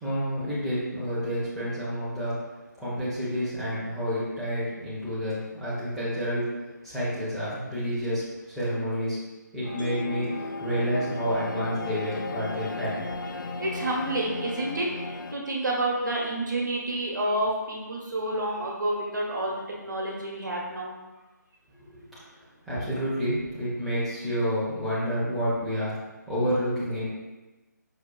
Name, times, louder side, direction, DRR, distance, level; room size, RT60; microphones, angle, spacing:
voice 1, 0.0-2.4 2.8-6.5 6.8-9.2 9.5-10.3 10.6-13.0 21.8-22.2 22.7-25.9 26.3-27.1, equal, ahead, -12 dB, 0.5 m, -29 dB
sound 1, 9.6-15.3, left 3 dB, 85° left, 0.4 m, -36 dB
Mallet percussion, 9.8-13.1, equal, 70° left, 1.1 m, -42 dB
voice 2, 13.6-14.9 15.3-20.9, right 1 dB, 75° right, -2 dB, 0.9 m, -29 dB
4.9 x 2.3 x 2.2 m, 1.1 s
figure-of-eight pair, 155°, 10 cm